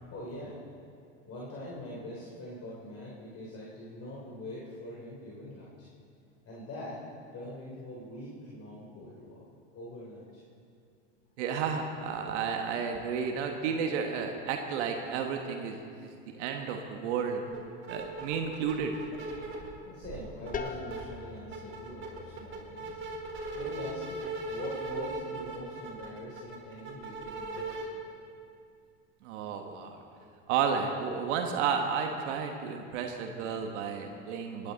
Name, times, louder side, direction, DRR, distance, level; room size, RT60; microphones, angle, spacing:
voice 1, 0.1-0.6 1.3-5.9 6.4-7.0 7.3-9.4 9.7-10.4 15.9-16.1 19.8-23.0 23.6-28.1, left 1 dB, 40° left, -5 dB, 3.1 m, -43 dB
voice 2, 11.4-17.4 17.9-18.9 29.2-30.0 30.5-34.7, right 6 dB, 75° right, 4 dB, 1.4 m, -32 dB
sound 1, 17.5-17.6 17.8-19.7 20.0-21.0 21.4-27.8, right 3 dB, 35° right, 4.1 m, -38 dB
sound 2, 20.5-26.1, left 5 dB, 25° left, 1.0 m, -45 dB
22.0 x 11.5 x 4.0 m, 2.4 s
hypercardioid pair, 100°, 36 cm